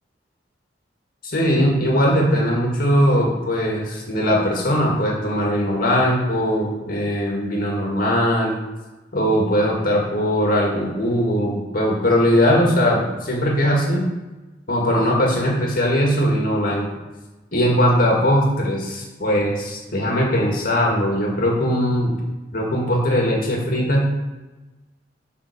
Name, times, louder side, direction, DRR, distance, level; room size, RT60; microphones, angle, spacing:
voice 1, 1.2-8.5 9.1-14.1 14.7-16.9 17.5-22.1 22.5-24.1, equal, 55° left, -1 dB, 2.0 m, -20 dB
11.5 x 4.0 x 6.7 m, 1.1 s
head